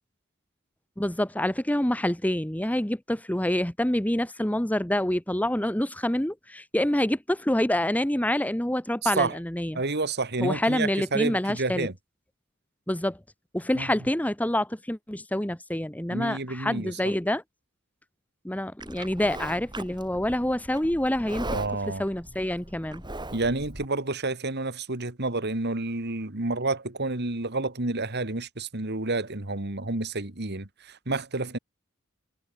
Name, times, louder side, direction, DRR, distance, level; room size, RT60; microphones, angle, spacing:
voice 1, 1.0-9.8 10.4-11.9 12.9-13.2 13.5-17.4 18.4-21.5 22.0-23.0, left 1 dB, 5° left, 1.2 m, -27 dB
voice 2, 9.0-9.4 9.7-11.9 13.8-13.9 16.1-17.0 21.5-22.0 23.3-31.6, right 3 dB, 55° right, 2.5 m, -29 dB
Livestock farm animals working animals, 18.8-23.9, right 2 dB, 20° right, 6.7 m, -39 dB
head